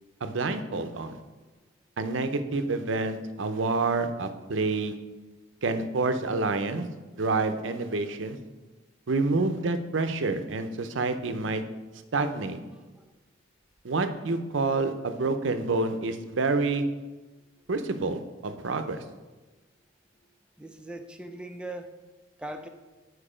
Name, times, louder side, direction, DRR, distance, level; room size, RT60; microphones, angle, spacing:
voice 1, 0.2-1.2 2.0-5.0 5.6-6.9 7.2-8.4 9.1-11.6 12.1-12.6 13.8-16.8 17.7-19.0, right 3 dB, 75° right, 9 dB, 0.6 m, -28 dB
voice 2, 20.6-21.9 22.4-22.7, right 1 dB, 5° right, 5 dB, 0.5 m, -39 dB
8.8 x 4.6 x 5.0 m, 1.2 s
head